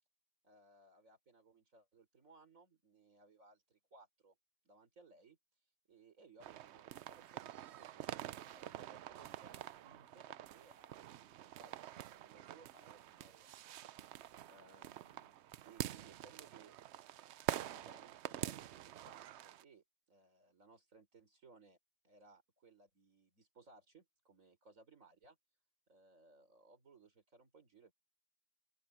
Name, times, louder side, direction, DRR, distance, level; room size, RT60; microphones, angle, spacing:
voice 1, 0.4-4.4 4.6-5.4 5.9-11.1 11.4-15.4 15.7-16.8 17.7-21.8 22.0-25.4 25.9-27.9, right 3 dB, 50° right, 4.6 m, -64 dB
sound 1, 6.4-19.6, right 12 dB, 75° right, 0.6 m, -47 dB
open air
omnidirectional pair, 1.7 m